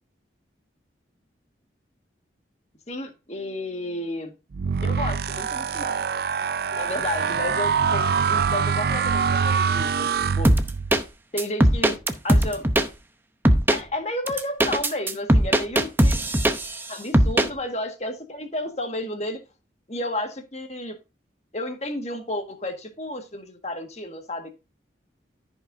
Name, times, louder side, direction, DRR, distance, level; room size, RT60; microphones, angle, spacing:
voice 1, 2.9-4.3 4.8-6.0 6.7-10.1 10.3-10.5 11.3-12.0 12.2-12.7 13.7-16.4 16.9-19.4 19.9-21.0 21.5-24.6, left 1 dB, 35° left, 1.7 m, -32 dB
sound 1, 4.5-11.0, right 6 dB, 55° right, 0.4 m, -24 dB
sound 2, 10.4-11.0 11.4-12.9 13.5-13.8 14.3-16.8 17.1-17.5, right 1 dB, 10° right, 0.7 m, -19 dB
14.0 x 5.5 x 2.7 m
head